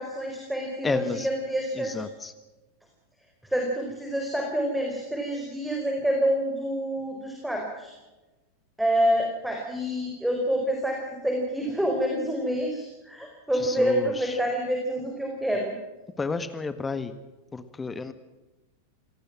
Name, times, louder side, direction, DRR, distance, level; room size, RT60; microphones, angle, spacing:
voice 1, 0.0-2.0 3.5-7.9 8.8-15.7, equal, ahead, 1 dB, 4.7 m, -27 dB
voice 2, 0.8-1.3 1.7-2.3 13.5-14.4 16.2-17.1 17.5-18.1, left 4 dB, 15° left, 12 dB, 1.6 m, -31 dB
26.5 x 19.0 x 6.1 m, 1.1 s
figure-of-eight pair, 90°, 0 cm